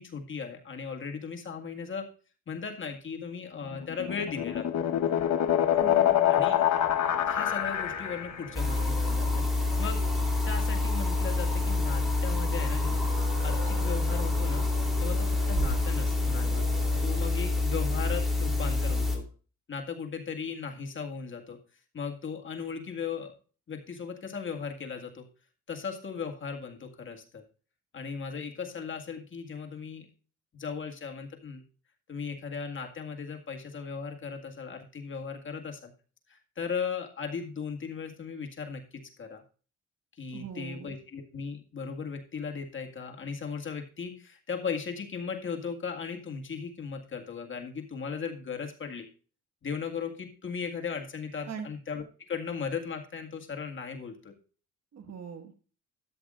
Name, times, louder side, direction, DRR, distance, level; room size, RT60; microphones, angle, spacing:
voice 1, 0.0-2.1 2.5-4.7 6.3-6.5 7.3-10.1 10.5-13.0 13.4-16.6 17.0-19.3 19.7-21.6 21.9-23.3 23.7-25.3 25.7-27.4 27.9-30.1 30.5-31.6 32.1-35.9 36.3-39.4 40.2-49.1 49.6-54.3, left 6 dB, 40° left, 3 dB, 1.9 m, -37 dB
sound 1, 3.7-8.5, left 10 dB, 65° left, 1.3 m, -26 dB
voice 2, 5.8-6.8 40.3-40.9 51.5-51.7 54.9-55.5, right 7 dB, 60° right, 7 dB, 1.7 m, -41 dB
sound 2, 6.7-17.4, right 3 dB, 85° right, 5.9 m, -42 dB
sound 3, 8.5-19.2, left 3 dB, ahead, 3.1 m, -27 dB
13.0 x 9.0 x 2.5 m, 0.37 s
cardioid pair, 90°, 30 cm